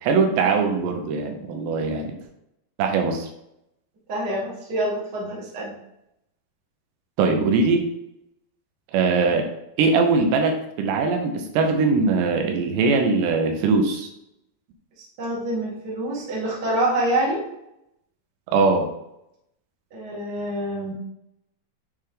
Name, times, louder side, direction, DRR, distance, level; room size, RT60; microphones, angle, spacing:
voice 1, 0.0-2.1 2.8-3.3 7.2-7.9 8.9-9.5 9.8-14.1 18.5-18.9, right 4 dB, 80° right, 4 dB, 3.0 m, -21 dB
voice 2, 4.1-5.7 15.2-17.4 19.9-20.9, right 1 dB, 35° right, -5 dB, 1.7 m, -26 dB
9.5 x 3.5 x 3.7 m, 0.82 s
omnidirectional pair, 5.0 m